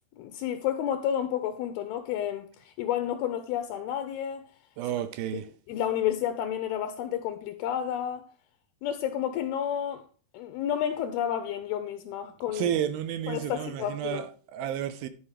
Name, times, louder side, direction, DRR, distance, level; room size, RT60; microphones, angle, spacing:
voice 1, 0.2-4.5 5.7-8.3 8.8-10.0 10.3-12.7 13.3-14.3, left 10 dB, 80° left, 2.4 m, -31 dB
voice 2, 4.8-5.5 12.5-15.1, right 10 dB, 80° right, 2.2 m, -31 dB
11.5 x 4.7 x 4.8 m
omnidirectional pair, 4.7 m